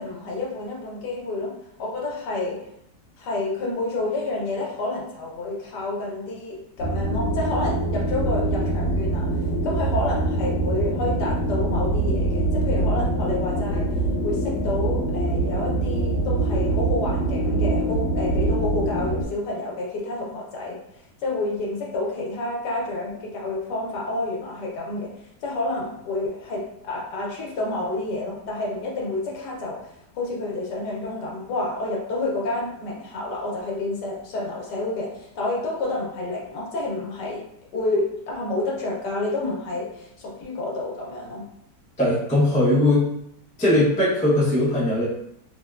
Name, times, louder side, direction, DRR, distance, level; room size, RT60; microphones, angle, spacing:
voice 1, 0.0-1.5 1.8-2.6 3.2-9.3 9.6-13.9 14.2-25.1 25.4-29.9 30.1-37.4 37.7-41.4, left 2 dB, 80° left, -3 dB, 1.3 m, -29 dB
sound 1, 6.8-19.2, right 2 dB, 50° left, 1.3 m, -24 dB
voice 2, 42.0-43.1 43.6-45.0, left 1 dB, 10° left, -8 dB, 0.4 m, -19 dB
3.5 x 2.1 x 2.3 m, 0.76 s
omnidirectional pair, 1.8 m